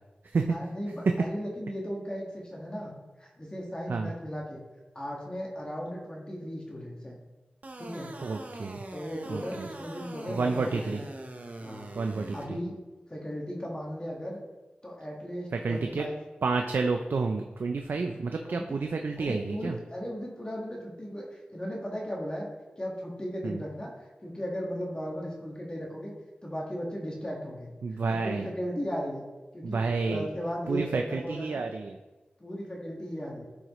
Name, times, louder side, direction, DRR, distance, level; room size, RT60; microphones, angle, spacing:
voice 1, 0.5-4.6 4.9-7.2 7.8-8.1 8.9-11.1 11.6-11.9 12.3-12.8 13.1-14.4 14.8-16.1 18.4-18.7 19.2-22.5 22.8-26.1 26.4-27.7 28.2-29.2 29.5-29.8 30.0-31.6 32.4-33.4, equal, 25° left, -2 dB, 1.5 m, -36 dB
sound 1, 7.6-12.4, right 2 dB, 50° right, 0.9 m, -43 dB
voice 2, 8.2-8.8 9.3-9.7 10.3-11.0 11.9-12.6 15.5-16.1 16.4-19.8 23.4-23.6 27.8-28.5 29.6-30.3 30.7-32.0, right 4 dB, 75° right, 4 dB, 0.5 m, -30 dB
12.0 x 4.8 x 3.0 m, 1.1 s
wide cardioid pair, 70°, 3 cm